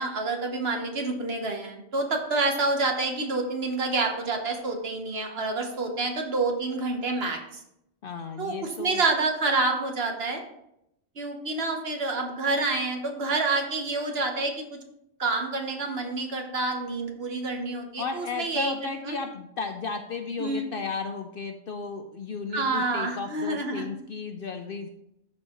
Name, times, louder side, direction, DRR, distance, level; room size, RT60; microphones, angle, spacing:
voice 1, 0.0-7.4 8.4-10.4 11.2-14.8 15.2-18.7 19.0-19.2 20.4-20.7 22.5-23.9, right 3 dB, 55° right, 3 dB, 1.3 m, -28 dB
voice 2, 8.0-9.0 18.0-24.9, left 4 dB, 60° left, 7 dB, 0.6 m, -34 dB
12.5 x 4.4 x 3.0 m, 0.80 s
omnidirectional pair, 1.3 m